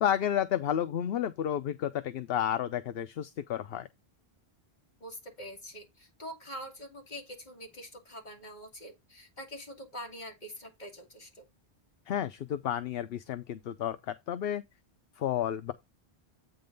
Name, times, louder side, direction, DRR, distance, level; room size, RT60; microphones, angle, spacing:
voice 1, 0.0-3.9 12.1-14.6 15.2-15.7, left 10 dB, 70° left, 0.8 m, -31 dB
voice 2, 5.0-11.4, equal, 45° left, 2.5 m, -45 dB
8.5 x 3.9 x 5.2 m
omnidirectional pair, 1.1 m